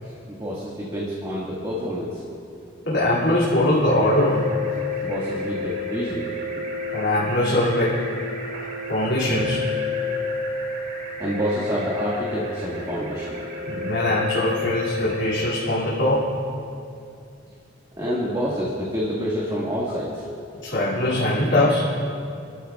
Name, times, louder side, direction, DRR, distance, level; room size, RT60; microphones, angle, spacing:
voice 1, 0.0-2.2 5.0-6.3 11.2-13.4 18.0-20.2, equal, 20° right, -6 dB, 1.7 m, -28 dB
voice 2, 2.9-4.5 6.9-8.0 8.9-9.6 13.7-16.3 20.6-21.9, left 1 dB, 65° left, -8 dB, 2.4 m, -21 dB
sound 1, 3.9-15.3, left 3 dB, 50° right, 2.0 m, -30 dB
24.5 x 13.5 x 2.4 m, 2.5 s
head